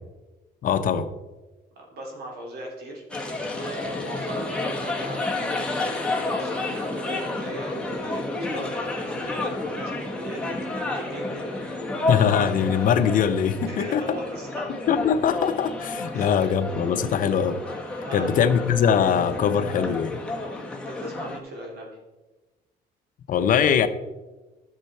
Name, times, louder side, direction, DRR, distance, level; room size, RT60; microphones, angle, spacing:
voice 1, 0.6-1.1 12.1-14.2 14.9-17.6 18.1-20.2 23.3-23.9, left 7 dB, 55° left, 0.7 m, -22 dB
voice 2, 1.7-6.0 6.4-8.2 8.5-11.8 13.7-14.7 16.1-16.3 18.0-18.3 20.8-21.9, right 1 dB, 70° right, 3.1 m, -38 dB
sound 1, 3.1-21.4, left 2 dB, 5° left, 1.6 m, -31 dB
12.0 x 6.6 x 4.4 m
cardioid pair, 110°, 17 cm